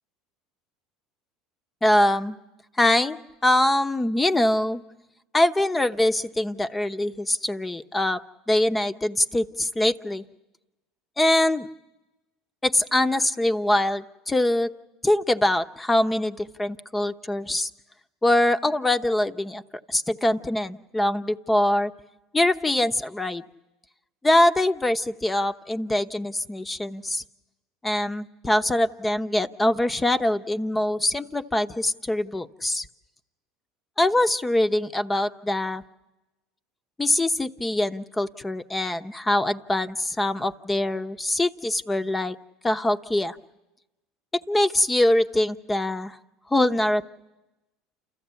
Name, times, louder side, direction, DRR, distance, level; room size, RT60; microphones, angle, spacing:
voice 1, 1.8-2.4 2.8-3.2 3.4-4.8 5.3-8.2 8.5-10.2 11.2-11.7 12.6-14.7 15.0-17.7 18.2-19.6 19.9-21.9 22.3-23.4 24.2-27.2 27.8-32.9 34.0-35.8 37.0-42.4 42.6-43.4 44.5-46.2 46.5-47.0, left 1 dB, 15° left, 10 dB, 0.9 m, -23 dB
29.5 x 14.0 x 8.3 m, 1.0 s
hypercardioid pair, 80°, 0 cm